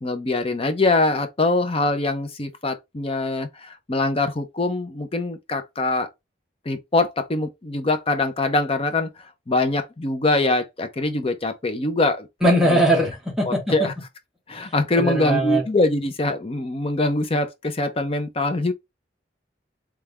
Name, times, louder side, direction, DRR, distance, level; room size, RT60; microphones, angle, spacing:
voice 1, 0.0-6.1 6.7-9.1 9.5-12.3 12.7-12.8 13.5-13.9 14.5-18.7, left 2 dB, 35° left, 0.7 m, -23 dB
voice 2, 12.4-13.7 14.5-15.6, right 1 dB, 5° right, 1.7 m, -21 dB
3.6 x 3.3 x 3.4 m
head